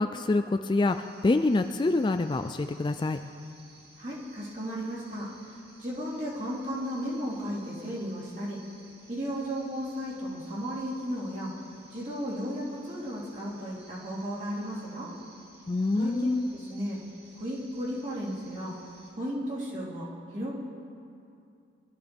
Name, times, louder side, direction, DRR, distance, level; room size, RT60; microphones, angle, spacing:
voice 1, 0.0-3.2 15.7-16.5, left 2 dB, 25° left, 8 dB, 0.3 m, -26 dB
sound 1, 0.9-19.1, right 2 dB, 55° right, 2.8 m, -56 dB
voice 2, 4.0-8.6 9.1-11.6 11.9-15.1 15.9-17.0 17.3-18.8 19.2-20.6, equal, 40° right, -7 dB, 3.5 m, -35 dB
23.5 x 13.0 x 3.5 m, 2.5 s
head